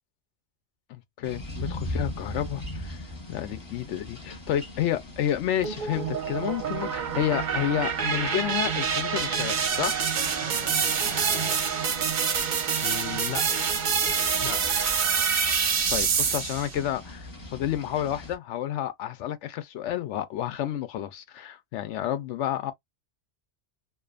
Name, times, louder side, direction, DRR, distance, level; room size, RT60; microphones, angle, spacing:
voice 1, 0.9-3.0 3.3-9.9 15.9-22.7, left 11 dB, 90° left, 0.9 m, -30 dB
sound 1, 1.2-18.4, left 1 dB, 20° left, 0.8 m, -41 dB
sound 2, 5.6-16.8, right 6 dB, 50° right, 0.7 m, -26 dB
voice 2, 10.4-10.7 11.1-11.6 12.8-13.5 14.4-14.9, left 9 dB, 65° left, 0.7 m, -38 dB
2.5 x 2.3 x 2.4 m
omnidirectional pair, 1.2 m